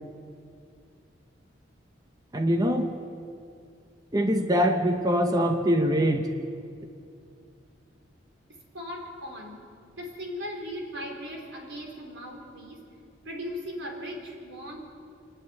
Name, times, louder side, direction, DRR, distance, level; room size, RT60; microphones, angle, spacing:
voice 1, 2.3-2.9 4.1-6.3, equal, 20° right, 5 dB, 0.9 m, -23 dB
voice 2, 8.7-9.6 10.0-12.8 13.2-14.8, equal, 90° right, 0 dB, 4.5 m, -38 dB
26.5 x 10.0 x 9.7 m, 2.4 s
head